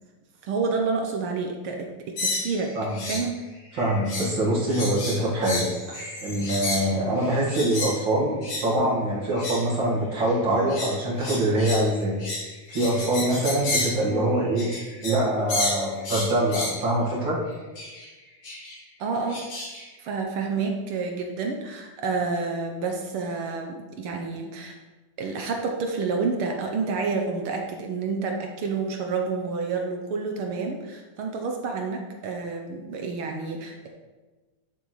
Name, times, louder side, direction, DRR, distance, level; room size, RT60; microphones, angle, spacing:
voice 1, 0.4-2.7 3.0-3.3 19.0-19.4 20.0-24.8 25.2-33.9, right 4 dB, 75° right, 2 dB, 1.2 m, -29 dB
sound 1, 2.2-3.3 3.6-4.4 4.7-8.0 8.4-8.7 9.2-9.7 10.2-15.2 15.5-16.8 17.7-18.1 18.4-18.7 19.3-19.8, left 2 dB, 55° left, 3.7 m, -31 dB
voice 2, 3.7-12.2 12.7-14.7 15.0-17.4, right 1 dB, 45° right, -4 dB, 2.3 m, -24 dB
11.0 x 6.8 x 3.2 m, 1.2 s
omnidirectional pair, 3.4 m